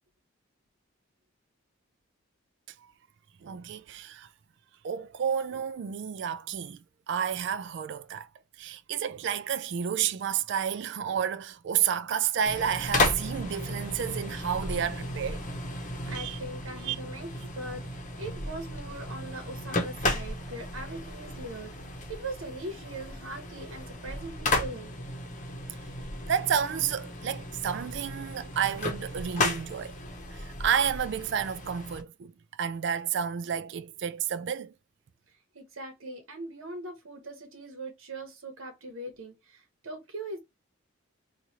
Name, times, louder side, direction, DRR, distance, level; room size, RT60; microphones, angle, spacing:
voice 1, 3.4-4.3 4.8-6.8 7.1-8.3 8.6-15.4 16.1-16.4 16.8-17.0 26.3-29.9 30.3-32.3 32.6-34.7, right 8 dB, 60° right, 0.3 m, -30 dB
sound 1, 12.5-32.0, left 2 dB, 40° left, 0.8 m, -34 dB
voice 2, 15.8-21.7 22.1-25.0 35.5-40.4, right 2 dB, 80° right, 1.1 m, -41 dB
3.1 x 2.4 x 4.2 m
head